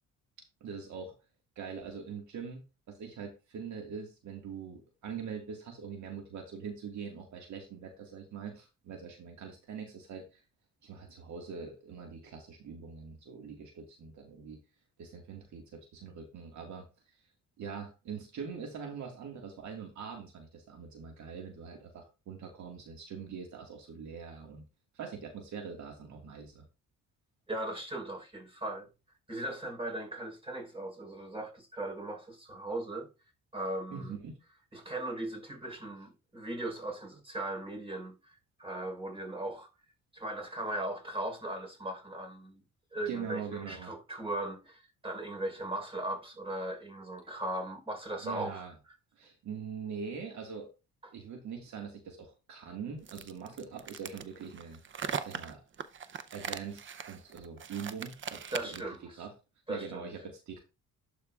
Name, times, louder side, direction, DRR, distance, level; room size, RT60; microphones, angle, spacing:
voice 1, 0.6-1.1 1.6-10.4 10.8-14.6 15.0-16.9 17.6-24.6 24.9-26.7 33.9-34.4 43.1-43.9 48.2-48.7 49.2-50.7 51.1-54.8 55.2-55.6 56.3-59.3 59.7-60.6, right 6 dB, 70° right, 1.9 m, -43 dB
voice 2, 27.5-28.9 29.3-33.1 33.5-34.2 34.7-39.7 40.1-42.6 42.9-48.6 58.5-59.3 59.7-60.0, right 1 dB, 20° right, 4.4 m, -38 dB
sound 1, 53.0-59.0, right 7 dB, 40° right, 0.7 m, -40 dB
11.5 x 5.0 x 2.4 m
cardioid pair, 90°, 30 cm